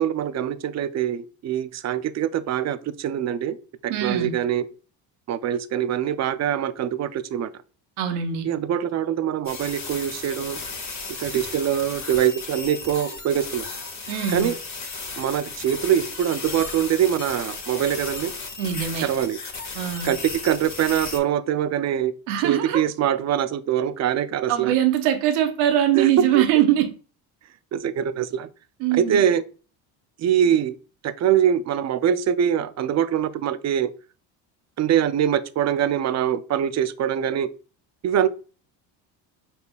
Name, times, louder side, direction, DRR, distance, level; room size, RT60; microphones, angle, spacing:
voice 1, 0.0-3.6 3.8-4.7 5.3-7.5 8.4-10.6 11.2-13.7 14.3-14.5 15.2-18.3 19.0-19.4 20.0-22.1 22.4-24.7 25.9-26.4 27.7-28.5 28.9-29.4 30.2-30.7 31.0-33.9 34.8-37.5 38.0-38.3, right 9 dB, 35° right, 0.5 m, -23 dB
voice 2, 3.9-4.3 8.0-8.5 14.1-14.5 18.6-19.1 19.7-20.1 22.3-22.8 24.5-26.9 28.8-29.2, right 11 dB, 80° right, 1.0 m, -22 dB
sound 1, 9.5-21.2, left 4 dB, 35° left, 1.7 m, -35 dB
5.3 x 4.1 x 2.3 m
supercardioid pair, 80°, 48 cm